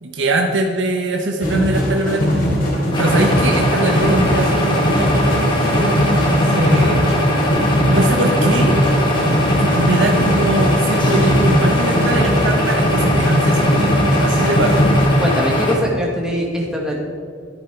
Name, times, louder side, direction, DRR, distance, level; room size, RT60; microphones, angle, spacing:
voice 1, 0.0-2.4 3.0-7.0 7.9-8.8 9.6-13.8 14.2-14.9, right 2 dB, 80° right, 2 dB, 1.0 m, -22 dB
sound 1, 1.4-15.0, equal, 50° left, 3.5 m, -19 dB
sound 2, 2.9-15.8, equal, 25° left, 2.1 m, -20 dB
voice 2, 15.2-17.0, equal, 5° right, -2 dB, 1.6 m, -22 dB
11.0 x 11.0 x 4.6 m, 2.1 s
head